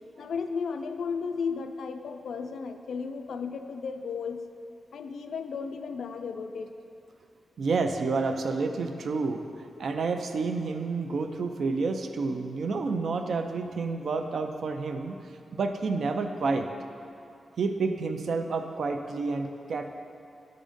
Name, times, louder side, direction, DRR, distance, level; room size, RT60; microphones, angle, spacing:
voice 1, 0.2-4.4 4.9-6.7, left 5 dB, 75° left, 8 dB, 0.4 m, -34 dB
voice 2, 7.6-9.4 9.8-15.2 15.5-16.7 17.6-20.0, right 4 dB, 60° right, 6 dB, 0.4 m, -29 dB
8.9 x 3.8 x 5.1 m, 2.6 s
wide cardioid pair, 150°, 0 cm